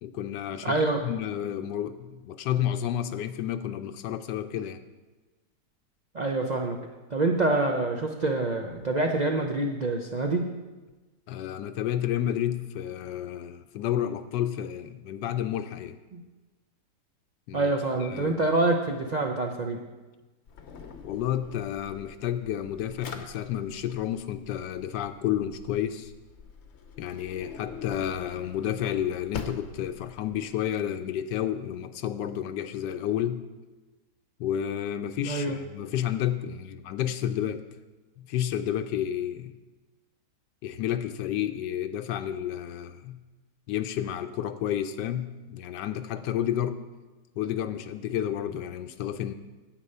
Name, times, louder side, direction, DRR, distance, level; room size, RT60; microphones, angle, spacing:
voice 1, 0.0-4.8 11.3-16.0 17.5-17.7 18.0-18.4 21.0-26.1 27.0-33.4 34.4-37.6 38.2-39.6 40.6-43.2 43.7-46.8 47.4-49.3, left 10 dB, 85° left, 9 dB, 1.2 m, -31 dB
voice 2, 0.6-1.0 6.1-6.8 7.1-10.4 16.1-16.2 17.5-19.8 35.2-35.6, right 2 dB, 70° right, 2 dB, 0.4 m, -26 dB
Drawer open or close, 20.5-30.4, left 5 dB, 50° left, 0.9 m, -44 dB
10.0 x 8.3 x 5.5 m, 1.2 s
omnidirectional pair, 1.8 m